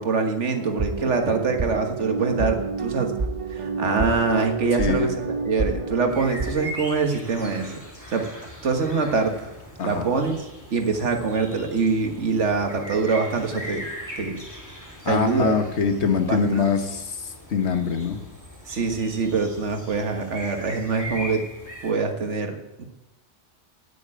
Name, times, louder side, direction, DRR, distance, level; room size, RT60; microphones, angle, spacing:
voice 1, 0.0-3.1 3.5-5.1 5.5-7.7 8.1-8.3 8.6-9.3 9.8-10.4 10.7-13.8 14.2-14.4 15.1-15.5 16.3-16.7 18.7-21.4 21.8-22.8, right 4 dB, 70° right, 4 dB, 1.8 m, -24 dB
sound 1, 0.6-6.7, right 4 dB, 30° right, 0.7 m, -29 dB
voice 2, 4.7-5.2 9.8-10.1 15.0-18.2, left 5 dB, 65° left, 7 dB, 1.5 m, -24 dB
sound 2, 6.1-21.9, equal, 15° left, 2.4 m, -40 dB
9.2 x 8.9 x 8.6 m, 0.93 s
omnidirectional pair, 1.3 m